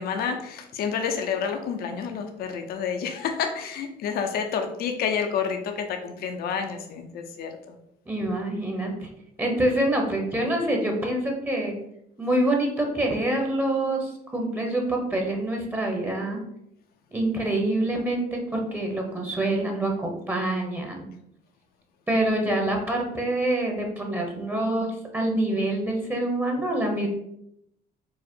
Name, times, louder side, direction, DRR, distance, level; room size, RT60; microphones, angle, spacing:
voice 1, 0.0-7.8, left 6 dB, 65° left, 4 dB, 0.6 m, -29 dB
voice 2, 8.1-9.1 9.4-11.7 12.2-16.4 17.1-21.1 22.1-24.9 25.1-27.1, right 1 dB, 10° right, 1 dB, 0.9 m, -26 dB
4.7 x 2.1 x 4.4 m, 0.76 s
cardioid pair, 110°, 17 cm